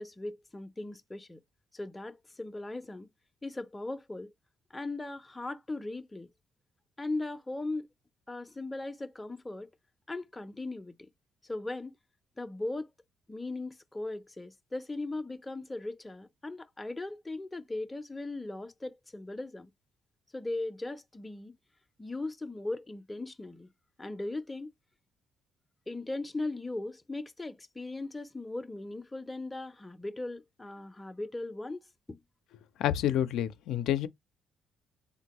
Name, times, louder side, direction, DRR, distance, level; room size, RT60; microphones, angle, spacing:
voice 1, 0.0-1.4 1.7-3.1 3.4-4.3 4.7-6.3 7.0-7.9 8.3-9.7 10.1-10.9 11.4-11.9 12.4-12.9 13.3-19.7 20.3-21.5 22.0-23.7 24.0-24.7 25.9-31.8, left 2 dB, 15° left, 0.5 m, -38 dB
voice 2, 32.8-34.1, left 11 dB, 85° left, 0.4 m, -28 dB
3.7 x 2.1 x 2.9 m
cardioid pair, 90°, 0 cm